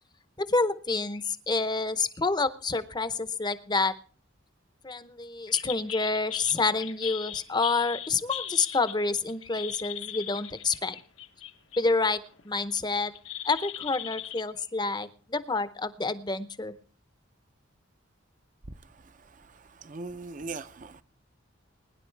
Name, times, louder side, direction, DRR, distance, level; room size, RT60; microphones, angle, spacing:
voice 1, 0.5-3.9 4.8-10.9 11.8-12.2 12.4-13.1 13.5-16.7, left 3 dB, 20° left, 0.7 m, -28 dB
sound 1, 5.5-11.9 12.3-14.4, left 11 dB, 80° left, 1.2 m, -38 dB
voice 2, 19.8-21.0, right 3 dB, 40° right, 0.6 m, -39 dB
21.0 x 10.5 x 3.3 m
head